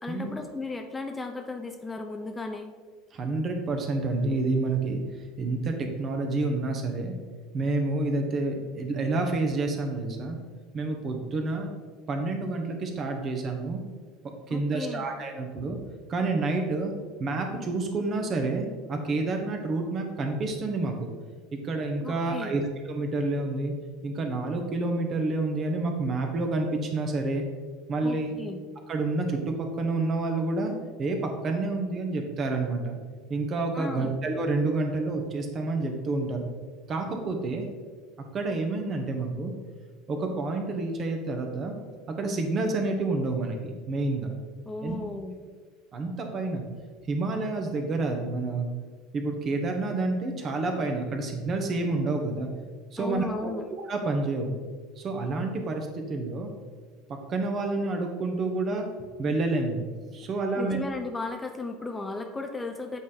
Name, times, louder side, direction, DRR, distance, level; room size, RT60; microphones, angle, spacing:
voice 1, 0.0-2.7 14.5-15.1 22.0-22.6 28.0-28.6 33.7-34.2 44.7-45.4 53.0-53.6 60.5-63.0, left 3 dB, 15° left, 5 dB, 0.6 m, -35 dB
voice 2, 3.1-5.0 5.4-7.1 7.5-10.4 10.7-11.7 12.1-13.8 14.5-15.8 16.1-16.9 17.2-21.1 21.5-23.7 24.0-27.4 27.9-28.3 28.9-30.7 31.0-33.0 33.3-36.5 36.9-37.7 38.3-39.5 40.1-41.8 42.1-44.3 44.8-44.9 45.9-46.6 47.1-48.7 49.1-52.5 52.9-53.5 53.9-54.6 55.0-56.5 57.3-58.9 59.2-59.9 60.1-60.8, right 3 dB, 35° right, 4 dB, 1.1 m, -29 dB
8.4 x 3.7 x 4.1 m, 1.5 s
figure-of-eight pair, 70°, 0 cm